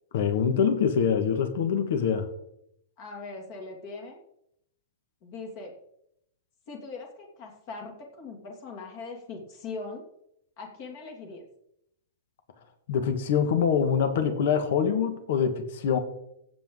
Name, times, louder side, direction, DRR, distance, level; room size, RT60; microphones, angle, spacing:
voice 1, 0.1-2.3 12.9-16.0, left 7 dB, 60° left, 8 dB, 1.7 m, -24 dB
voice 2, 3.0-4.2 5.2-5.7 6.7-10.0 10.6-11.4, left 3 dB, 40° left, 2 dB, 2.5 m, -40 dB
15.5 x 7.7 x 3.8 m, 0.76 s
supercardioid pair, 160°, 0 cm